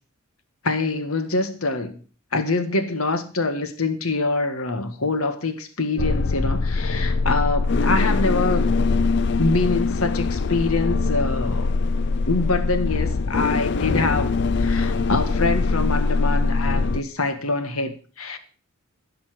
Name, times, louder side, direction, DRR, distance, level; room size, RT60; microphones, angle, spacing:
voice 1, 0.6-2.0 2.3-8.7 9.4-11.7 12.3-18.4, left 3 dB, 80° left, 1.6 m, -25 dB
sound 1, 6.0-17.0, left 3 dB, 55° left, 0.5 m, -22 dB
16.0 x 5.7 x 7.6 m
head